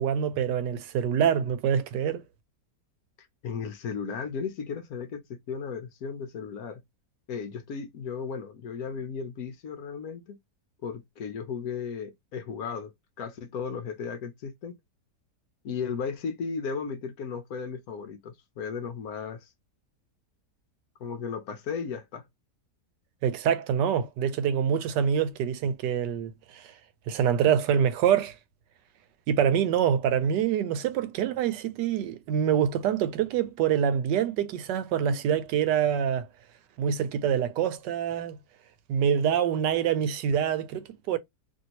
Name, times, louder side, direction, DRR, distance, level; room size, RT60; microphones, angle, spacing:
voice 1, 0.0-2.2 23.2-26.7 27.1-28.3 29.3-36.3 36.8-38.4 38.9-41.2, right 8 dB, 90° right, 1.2 m, -25 dB
voice 2, 3.4-6.8 7.3-10.4 10.8-12.9 13.2-14.8 15.6-19.5 21.0-22.2, left 6 dB, 65° left, 1.1 m, -35 dB
2.9 x 2.7 x 2.8 m
omnidirectional pair, 1.8 m